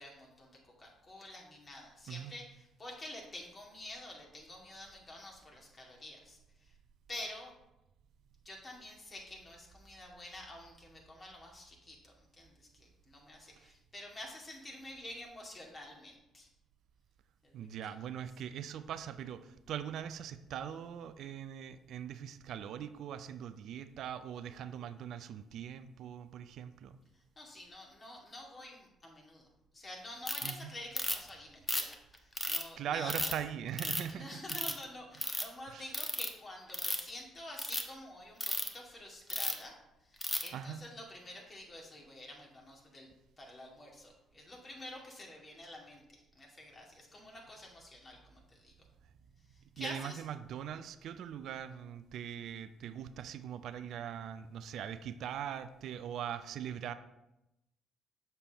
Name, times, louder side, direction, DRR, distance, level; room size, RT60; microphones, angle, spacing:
voice 1, 0.0-6.8 7.1-7.5 8.4-16.5 17.4-17.7 27.1-29.5 29.7-33.3 34.1-43.1 43.4-46.0 46.3-48.7 49.4-50.2, left 1 dB, 35° left, -1 dB, 2.2 m, -49 dB
voice 2, 2.1-2.4 17.5-27.0 30.4-30.7 32.8-34.4 35.7-35.9 40.5-40.8 49.8-56.9, right 9 dB, 65° right, 11 dB, 0.4 m, -41 dB
Ratchet pawl, 30.3-30.5 31.0-31.3 31.7-32.6 33.1-33.3 33.8-34.1 34.5-34.8 35.1-35.4 35.9-36.3 36.7-37.1 37.5-37.8 38.4-38.7 39.3-39.6 40.2-40.5, left 1 dB, 15° left, 1.0 m, -34 dB
7.0 x 6.8 x 3.0 m, 0.91 s
hypercardioid pair, 60°, 0 cm